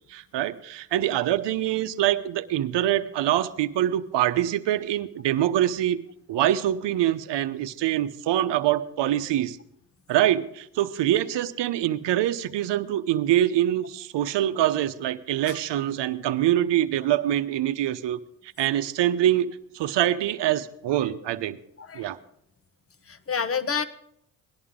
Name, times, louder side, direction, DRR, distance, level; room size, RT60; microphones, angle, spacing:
voice 1, 0.1-6.0 6.3-9.6 10.1-18.2 18.6-21.6 21.9-22.2, right 12 dB, 60° right, 11 dB, 0.9 m, -24 dB
voice 2, 23.1-23.8, left 6 dB, 30° left, 14 dB, 1.0 m, -29 dB
18.5 x 11.0 x 3.7 m, 0.72 s
supercardioid pair, 60°, 47 cm